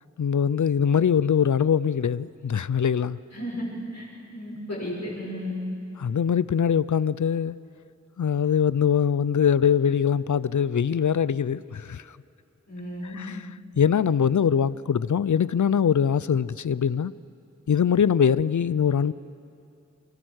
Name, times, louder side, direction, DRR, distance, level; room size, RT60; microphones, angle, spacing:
voice 1, 0.2-3.2 6.0-7.6 8.2-12.0 13.1-13.4 13.8-17.1 17.7-19.1, left 7 dB, 80° left, 0.5 m, -22 dB
voice 2, 3.3-3.7 3.9-5.6 12.7-13.2, left 1 dB, 65° left, 6.4 m, -34 dB
24.0 x 23.5 x 6.4 m
wide cardioid pair, 50°, 29 cm